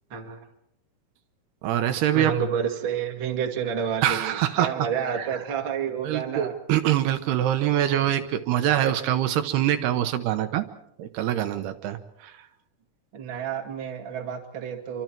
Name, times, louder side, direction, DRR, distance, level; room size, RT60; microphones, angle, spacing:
voice 1, 0.1-0.5 2.1-6.6 13.1-15.0, right 7 dB, 35° right, 3 dB, 2.2 m, -29 dB
voice 2, 1.6-2.3 4.0-4.9 5.2-5.3 6.0-10.7 11.0-12.3, right 11 dB, 80° right, 8 dB, 3.0 m, -24 dB
27.5 x 24.5 x 4.6 m, 0.76 s
omnidirectional pair, 4.8 m